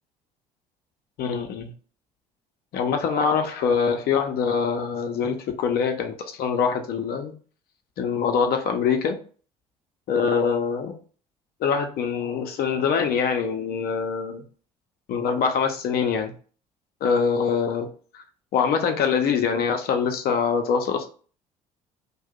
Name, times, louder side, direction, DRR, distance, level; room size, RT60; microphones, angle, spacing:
voice 1, 1.2-1.7 2.7-7.3 8.0-9.2 10.1-10.9 11.6-14.4 15.1-16.3 17.0-17.9 18.5-21.1, left 6 dB, 55° left, 5 dB, 0.7 m, -24 dB
2.7 x 2.3 x 3.6 m, 0.40 s
figure-of-eight pair, 55°, 19 cm